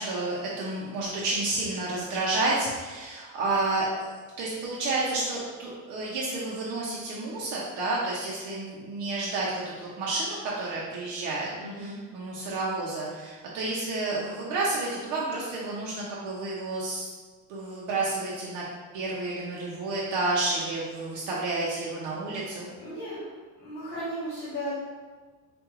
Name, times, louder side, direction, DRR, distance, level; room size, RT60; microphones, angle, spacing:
voice 1, 0.0-17.1 17.5-18.6 18.9-22.7, right 2 dB, 65° right, -5 dB, 0.8 m, -30 dB
voice 2, 11.6-12.0 22.8-23.3 23.6-24.7, equal, 25° left, -9 dB, 1.0 m, -35 dB
4.7 x 2.5 x 3.0 m, 1.4 s
cardioid pair, 155°, 33 cm